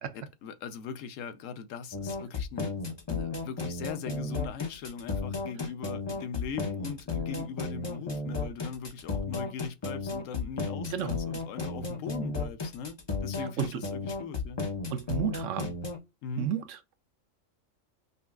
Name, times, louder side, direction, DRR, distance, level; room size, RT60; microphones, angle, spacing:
voice 1, 0.1-2.7 3.1-14.6 16.2-16.5, left 6 dB, 80° left, 1.0 m, -40 dB
sound 1, 1.9-16.0, left 3 dB, 30° left, 0.5 m, -34 dB
voice 2, 14.9-15.7 16.4-16.8, right 9 dB, 75° right, 0.9 m, -32 dB
5.3 x 2.3 x 2.2 m
omnidirectional pair, 1.3 m